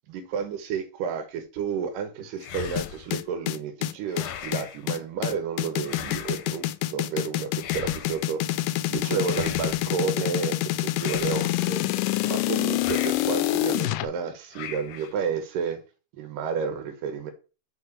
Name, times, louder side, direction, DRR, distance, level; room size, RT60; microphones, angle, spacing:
voice 1, 0.1-11.8 12.2-15.8 16.1-17.3, right 6 dB, 85° right, 2.8 m, -31 dB
sound 1, 2.4-3.2 4.1-4.9 5.8-6.6 7.6-8.3 9.2-10.0 10.9-11.8 12.7-13.4 14.5-15.2, left 9 dB, 70° left, 1.7 m, -39 dB
sound 2, 2.8-14.0, left 15 dB, 85° left, 2.2 m, -26 dB
6.3 x 4.9 x 6.5 m
omnidirectional pair, 3.8 m